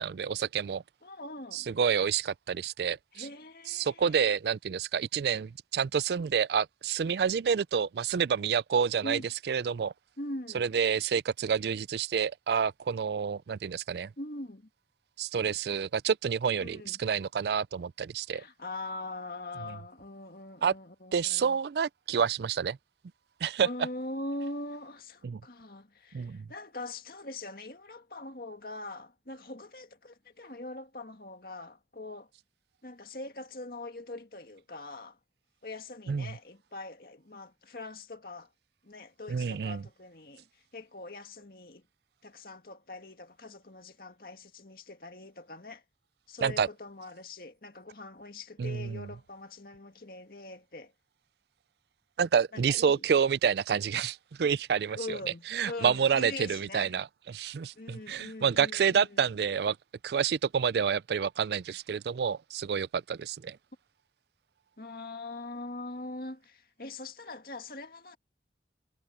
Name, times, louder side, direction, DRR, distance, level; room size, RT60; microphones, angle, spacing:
voice 1, 0.0-0.8 1.5-3.2 3.7-9.2 9.5-9.9 10.5-14.1 15.2-18.4 20.6-20.7 21.1-22.8 23.4-23.7 25.2-25.4 26.1-26.4 36.1-36.3 39.3-39.8 46.4-46.7 48.6-49.0 52.2-55.2 55.5-59.8 60.0-63.6, right 7 dB, 70° right, 0.4 m, -28 dB
voice 2, 1.0-1.7 3.1-4.2 9.0-9.2 10.2-10.7 14.2-14.7 16.6-17.0 18.3-21.6 23.6-32.3 32.8-35.2 35.6-38.5 38.8-41.8 42.2-45.8 46.3-50.9 52.5-53.0 55.0-56.9 57.7-59.3 64.8-68.2, left 2 dB, 55° left, 2.1 m, -42 dB
head